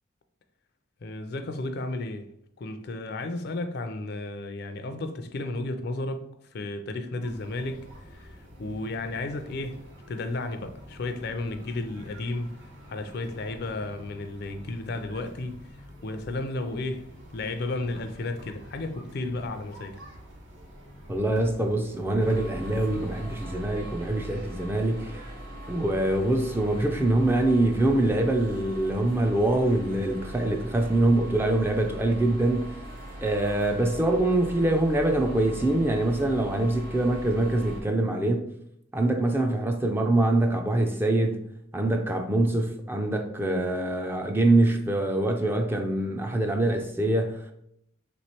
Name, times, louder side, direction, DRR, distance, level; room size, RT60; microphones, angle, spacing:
voice 1, 1.0-2.3 2.6-9.8 10.1-12.5 12.9-15.7 16.0-20.0, left 2 dB, 55° left, 0.4 m, -33 dB
sound 1, 7.2-23.5, equal, 70° right, 1.3 m, -47 dB
voice 2, 21.1-25.2 25.7-32.8 33.2-38.5 38.9-41.5 41.7-47.5, right 1 dB, 10° right, 0.4 m, -24 dB
sound 2, 22.2-37.8, right 1 dB, 45° right, 1.2 m, -40 dB
3.3 x 3.1 x 4.3 m
head